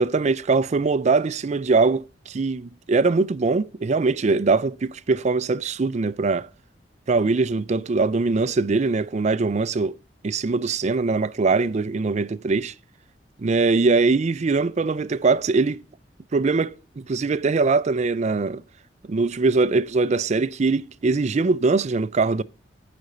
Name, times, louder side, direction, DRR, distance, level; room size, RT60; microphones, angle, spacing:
voice 1, 0.0-6.5 7.1-9.9 10.2-12.7 13.4-15.8 16.3-18.6 19.1-22.4, right 3 dB, 40° right, 0.4 m, -22 dB
9.6 x 5.1 x 7.8 m
head